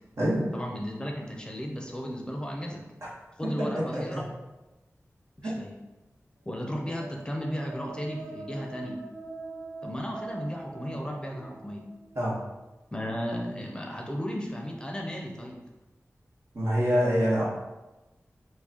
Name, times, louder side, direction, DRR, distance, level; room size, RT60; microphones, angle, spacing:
voice 1, 0.5-2.8 3.4-4.3 5.4-5.7 6.5-9.0 9.8-11.8 12.9-15.6, equal, 15° left, 0 dB, 0.6 m, -34 dB
sound 1, 6.6-12.3, right 3 dB, 85° right, 1.2 m, -43 dB
voice 2, 16.5-17.4, equal, 65° right, -6 dB, 1.1 m, -25 dB
4.6 x 2.1 x 2.8 m, 1.1 s
wide cardioid pair, 80°, 5 cm